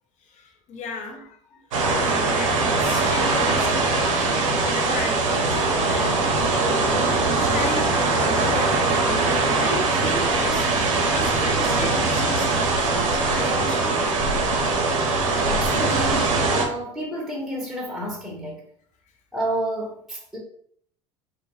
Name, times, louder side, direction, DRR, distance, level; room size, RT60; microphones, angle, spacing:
voice 1, 0.3-13.9, left 3 dB, 45° left, 0.7 m, -35 dB
sound 1, 1.7-16.7, right 3 dB, 75° right, 0.6 m, -21 dB
voice 2, 15.5-18.6 19.3-20.4, right 1 dB, ahead, 0.9 m, -30 dB
2.3 x 2.2 x 3.0 m
hypercardioid pair, 75°, 17 cm